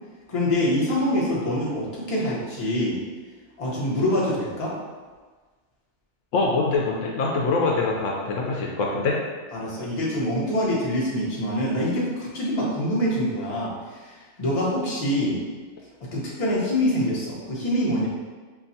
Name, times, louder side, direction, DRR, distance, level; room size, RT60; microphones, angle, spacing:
voice 1, 0.3-3.0 3.6-4.7 9.5-15.4 16.0-18.1, left 1 dB, 30° left, -6 dB, 0.9 m, -25 dB
voice 2, 6.3-9.2, left 3 dB, 75° left, -1 dB, 0.9 m, -24 dB
5.9 x 2.3 x 2.7 m, 1.4 s
omnidirectional pair, 1.3 m